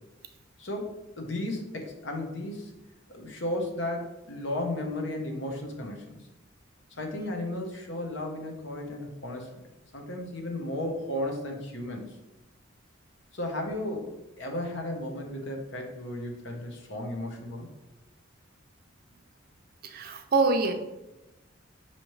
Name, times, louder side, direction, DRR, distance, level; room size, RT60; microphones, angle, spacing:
voice 1, 0.6-2.7 3.1-6.2 7.0-9.5 9.9-12.1 13.3-17.7, left 1 dB, 65° left, 2 dB, 0.9 m, -34 dB
voice 2, 19.9-20.7, right 3 dB, 50° right, 6 dB, 0.5 m, -24 dB
6.0 x 2.8 x 3.1 m, 0.98 s
head